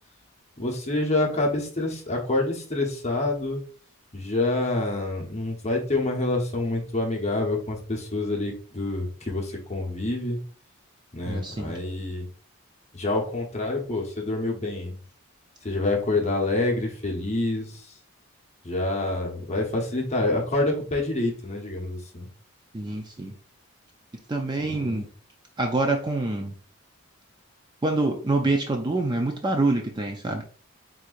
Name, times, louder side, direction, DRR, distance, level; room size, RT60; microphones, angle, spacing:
voice 1, 0.6-3.6 4.1-10.4 11.1-12.3 12.9-15.0 15.6-17.9 18.6-22.3 24.6-25.1, left 2 dB, 30° left, 0 dB, 1.0 m, -27 dB
voice 2, 11.3-11.7 22.7-23.3 24.3-25.1 25.6-26.5 27.8-30.4, right 2 dB, 20° right, 3 dB, 0.4 m, -26 dB
4.5 x 3.8 x 2.5 m, 0.43 s
head